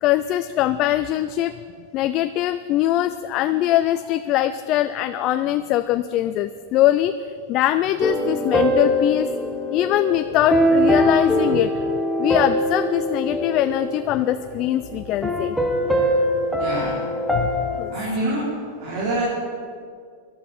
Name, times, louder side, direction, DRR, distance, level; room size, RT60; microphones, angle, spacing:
voice 1, 0.0-1.5 1.9-9.3 9.7-11.7 12.2-15.6 17.3-17.9, left 13 dB, 30° left, 11 dB, 0.3 m, -22 dB
sound 1, 8.0-14.6 15.2-17.8, equal, ahead, 1.1 m, -22 dB
voice 2, 16.5-17.0 17.9-18.5 18.8-19.2, right 2 dB, 50° right, -7 dB, 4.0 m, -26 dB
19.0 x 12.0 x 4.3 m, 2.1 s
supercardioid pair, 165°, 0 cm